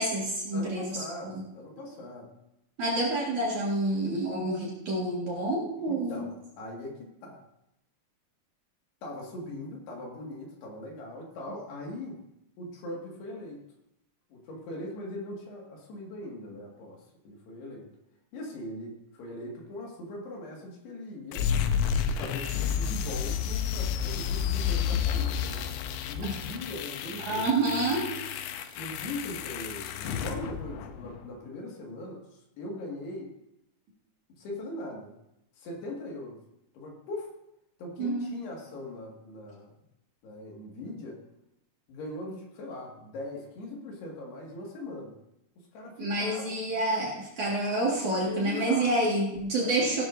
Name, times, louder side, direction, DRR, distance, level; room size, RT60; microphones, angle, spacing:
voice 1, 0.0-1.0 2.8-6.3 27.3-28.1 38.0-38.3 46.0-50.0, right 2 dB, 50° right, -4 dB, 2.7 m, -28 dB
voice 2, 0.5-2.3 5.9-7.4 9.0-12.2 12.6-13.6 14.3-17.9 18.3-21.5 22.2-25.6 26.1-27.6 28.8-32.2 32.6-33.3 34.4-35.1 35.6-36.4 36.7-37.3 37.8-39.8 40.2-41.2 41.9-45.1 45.7-46.4 48.3-48.9 49.6-49.9, left 1 dB, 65° left, -1 dB, 4.0 m, -40 dB
sound 1, 21.3-31.3, left 8 dB, 85° left, 3.0 m, -31 dB
16.5 x 12.0 x 2.7 m, 0.83 s
omnidirectional pair, 5.2 m